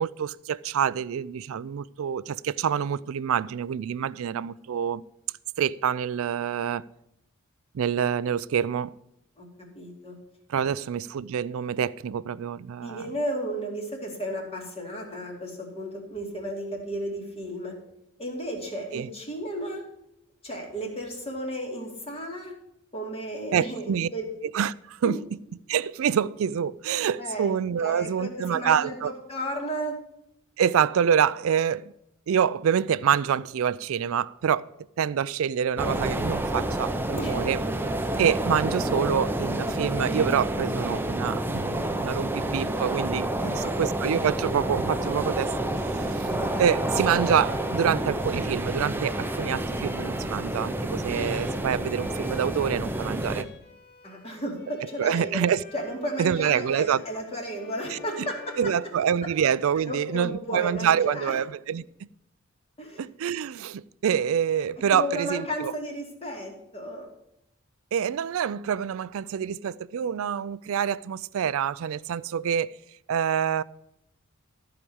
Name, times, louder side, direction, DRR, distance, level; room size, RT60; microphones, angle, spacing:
voice 1, 0.0-5.0 5.6-6.8 7.7-8.9 10.5-13.0 18.9-19.1 23.5-24.1 24.5-25.2 25.7-29.1 30.6-31.9 32.3-34.7 35.0-37.6 38.2-45.5 45.9-46.3 46.6-53.5 55.0-55.6 56.2-57.0 57.9-58.3 58.6-61.8 63.0-65.7 67.9-72.7 73.1-73.6, right 8 dB, 70° right, 0.4 m, -26 dB
voice 2, 9.7-10.2 12.8-17.7 18.2-19.8 20.4-22.5 22.9-24.3 25.0-25.2 27.2-27.5 27.8-30.0 37.2-37.4 43.4-43.7 54.0-55.4 55.7-58.7 59.2-59.3 59.9-61.4 62.8-63.0 64.9-67.1, equal, 30° left, 2.5 m, -33 dB
sound 1, 35.8-53.4, right 1 dB, 10° right, 0.7 m, -29 dB
Bowed string instrument, 46.1-59.6, left 5 dB, 50° left, 2.1 m, -49 dB
14.0 x 4.9 x 7.0 m
head